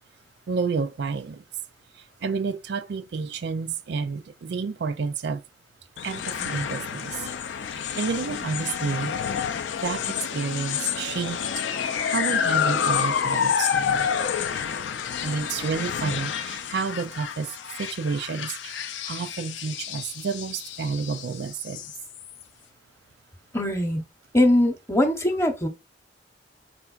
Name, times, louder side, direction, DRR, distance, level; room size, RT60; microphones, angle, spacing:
voice 1, 0.5-1.4 2.0-5.4 6.0-7.3 7.7-9.1 9.8-11.4 11.8-14.1 15.2-17.5 17.8-21.8, right 5 dB, 65° right, 0.4 m, -30 dB
A Ghost's Musroom Trip, 6.0-22.4, left 7 dB, 85° left, 0.4 m, -29 dB
voice 2, 23.5-24.0 24.3-25.7, left 1 dB, 15° left, 0.8 m, -21 dB
4.4 x 4.3 x 2.4 m
head